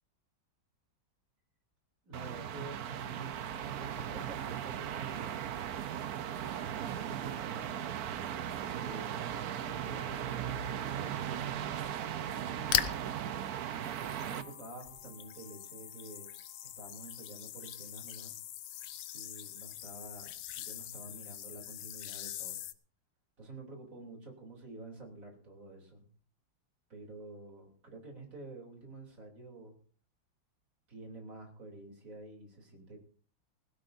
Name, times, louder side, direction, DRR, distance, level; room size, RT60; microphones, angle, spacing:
voice 1, 2.0-5.3 6.5-7.8 8.6-11.5 12.3-13.0 14.1-16.3 16.8-18.4 19.1-22.6 23.4-26.1 26.9-29.8 30.9-33.0, right 2 dB, 40° right, 1 dB, 3.6 m, -49 dB
sound 1, 2.1-14.4, right 10 dB, 60° right, 1.1 m, -37 dB
sound 2, 6.4-21.3, right 2 dB, 45° left, 8.3 m, -61 dB
sound 3, 12.7-13.1 13.7-22.7, left 12 dB, 75° left, 1.5 m, -40 dB
20.0 x 16.0 x 2.7 m, 0.44 s
omnidirectional pair, 2.2 m